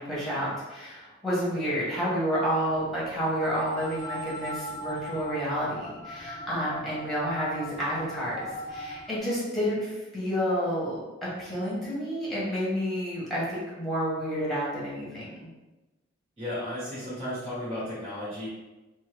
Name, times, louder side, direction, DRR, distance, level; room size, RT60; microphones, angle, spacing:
voice 1, 0.0-8.4 8.7-15.5, equal, ahead, -8 dB, 1.0 m, -30 dB
sound 1, 2.7-9.2, left 1 dB, 20° left, 0.5 m, -40 dB
voice 2, 16.4-18.5, left 1 dB, 25° right, -10 dB, 1.1 m, -34 dB
2.7 x 2.6 x 3.2 m, 1.1 s
head